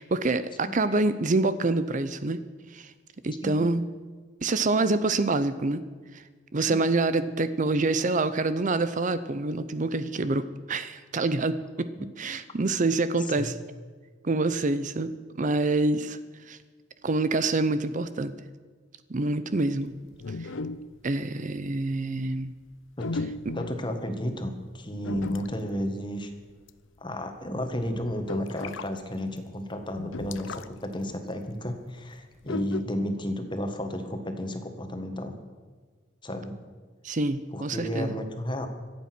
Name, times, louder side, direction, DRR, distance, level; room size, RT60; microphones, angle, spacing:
voice 1, 0.0-2.4 2.7-2.9 3.2-3.9 4.4-5.8 6.1-6.2 6.5-11.9 12.2-13.6 14.2-15.1 15.4-16.2 16.5-16.6 17.0-18.3 19.1-19.9 20.4-20.5 21.0-22.5 23.4-23.5 37.0-38.2, right 2 dB, 40° right, 13 dB, 0.6 m, -26 dB
sound 1, 20.1-21.1 21.6-21.8 23.0-23.9 25.0-25.7 26.5-26.7 27.0-27.1 27.4-28.9 29.4-29.5 29.8-30.9 31.1-31.2 32.4-32.8, left 3 dB, 90° left, 0.7 m, -36 dB
voice 2, 23.5-26.3 27.0-35.4 36.2-36.6 37.5-38.7, equal, 25° left, 6 dB, 1.6 m, -32 dB
24.5 x 8.4 x 6.1 m, 1.5 s
head